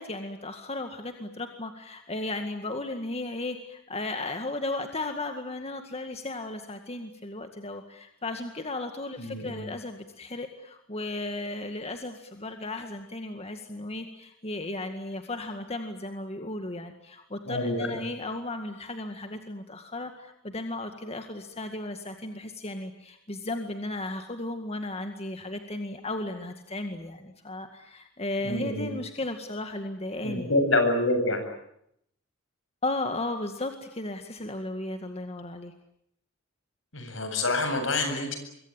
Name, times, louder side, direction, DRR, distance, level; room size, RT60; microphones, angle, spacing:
voice 1, 0.0-30.5 32.8-35.7, left 2 dB, 30° left, 6 dB, 2.0 m, -35 dB
voice 2, 9.2-9.7 17.5-18.0 28.4-28.9 30.2-31.4 36.9-38.4, left 2 dB, 70° left, 6 dB, 7.9 m, -27 dB
26.0 x 23.0 x 9.0 m, 0.74 s
head